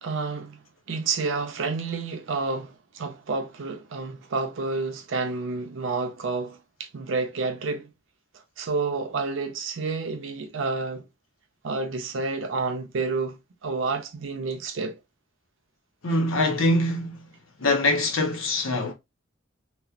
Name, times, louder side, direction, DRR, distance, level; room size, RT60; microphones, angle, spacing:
voice 1, 0.0-7.9 8.6-11.1 11.6-14.9, right 4 dB, 70° right, 0.5 m, -30 dB
voice 2, 16.0-17.2 17.6-18.9, left 1 dB, 85° left, 0.8 m, -23 dB
2.9 x 2.0 x 2.4 m
head